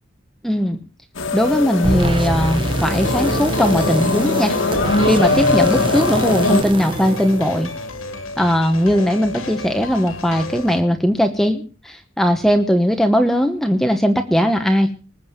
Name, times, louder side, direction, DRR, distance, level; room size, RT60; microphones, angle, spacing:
voice 1, 0.4-0.8 1.3-4.6 5.1-7.7 8.4-14.9, equal, ahead, 6 dB, 1.0 m, -18 dB
sound 1, 1.2-6.6, left 3 dB, 65° left, 1.7 m, -21 dB
sound 2, 1.8-8.0, right 1 dB, 25° right, 1.0 m, -25 dB
sound 3, 3.0-10.8, left 3 dB, 90° left, 2.6 m, -32 dB
20.0 x 7.4 x 7.4 m, 0.38 s
head